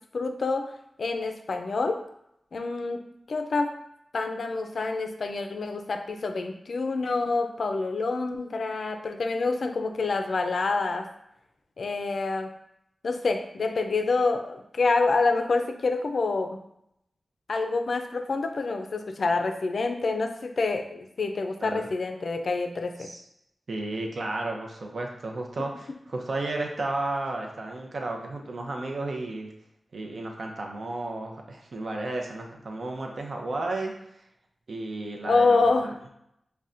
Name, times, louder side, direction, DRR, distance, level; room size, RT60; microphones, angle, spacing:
voice 1, 0.1-0.7 1.0-2.0 2.5-3.0 3.3-3.7 4.1-11.1 11.8-12.5 13.0-16.6 17.5-23.1 35.3-36.0, left 3 dB, 70° left, 6 dB, 0.4 m, -27 dB
voice 2, 23.7-29.5 29.9-33.9 34.7-35.7, right 2 dB, 60° right, 1 dB, 0.6 m, -33 dB
5.5 x 2.2 x 2.5 m, 0.77 s
wide cardioid pair, 105°, 0 cm